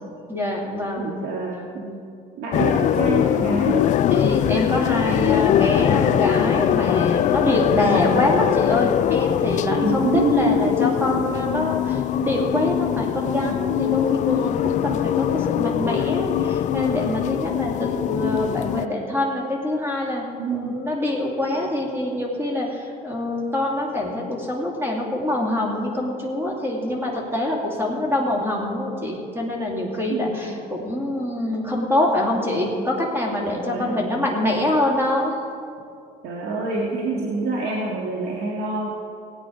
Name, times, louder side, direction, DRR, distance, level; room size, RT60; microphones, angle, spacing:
voice 1, 0.3-1.1 4.1-20.2 20.5-35.4, left 1 dB, 15° right, -1 dB, 2.5 m, -25 dB
voice 2, 1.0-2.0 2.4-3.9 7.8-8.2 9.8-11.3 12.5-12.7 13.3-13.6 20.4-20.8 30.1-30.4 33.7-34.0 36.2-38.9, right 3 dB, 65° right, -2 dB, 1.9 m, -27 dB
sound 1, 2.5-18.9, left 11 dB, 40° left, 0.4 m, -22 dB
16.5 x 9.0 x 5.1 m, 2.5 s
supercardioid pair, 110°, 18 cm